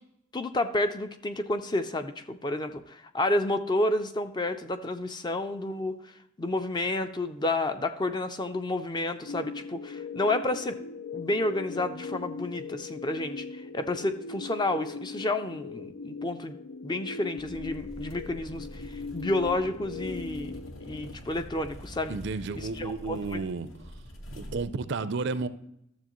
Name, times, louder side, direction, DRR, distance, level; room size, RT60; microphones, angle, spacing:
voice 1, 0.3-6.0 6.4-10.8 11.1-16.6 16.8-22.2 22.6-23.4, left 2 dB, 20° left, 9 dB, 0.4 m, -30 dB
sound 1, 9.2-21.1, left 4 dB, 85° left, 0.5 m, -40 dB
sound 2, 17.4-24.6, equal, 70° left, 1.3 m, -45 dB
voice 2, 22.1-23.7 24.4-25.5, right 4 dB, 55° right, 13 dB, 0.4 m, -32 dB
12.5 x 7.2 x 3.0 m, 0.79 s
head